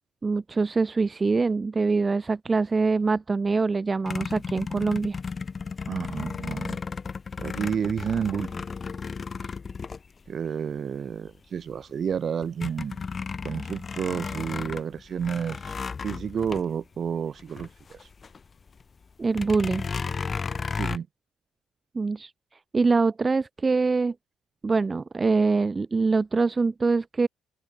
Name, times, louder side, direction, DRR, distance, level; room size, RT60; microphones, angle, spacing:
voice 1, 0.2-5.2 19.2-19.9 21.9-24.1 24.6-27.3, right 4 dB, 30° right, 0.5 m, -24 dB
sound 1, 4.1-10.7 11.3-11.4 11.7-18.4 18.7-18.8 19.3-21.0, left 5 dB, 35° left, 3.0 m, -34 dB
voice 2, 5.9-6.8 7.4-8.6 10.3-13.0 13.4-15.7 16.0-18.0 20.7-21.1, right 7 dB, 55° right, 3.1 m, -30 dB
cardioid pair, 90°, 0 cm